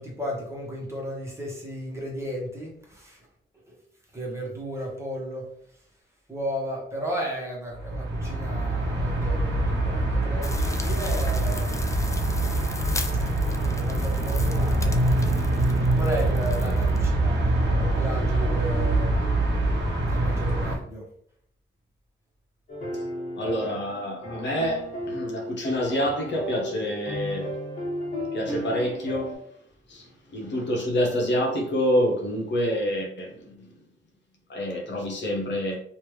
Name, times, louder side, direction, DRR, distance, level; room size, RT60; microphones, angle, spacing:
voice 1, 0.0-3.2 3.7-3.8 4.1-5.5 6.3-11.8 13.1-13.2 13.8-15.0 16.0-19.1 20.1-21.0, equal, 15° right, 1.2 m, -34 dB
sound 1, 7.7-20.8, right 2 dB, 65° right, 1.0 m, -24 dB
sound 2, 10.4-17.0, left 2 dB, 15° left, 0.4 m, -39 dB
sound 3, 22.7-29.4, equal, 40° left, 1.4 m, -34 dB
voice 2, 23.3-27.5 28.3-29.4 29.9-30.0 30.3-33.7 34.5-35.8, equal, 65° left, 1.0 m, -27 dB
3.2 x 2.6 x 3.1 m
cardioid pair, 90°, 20 cm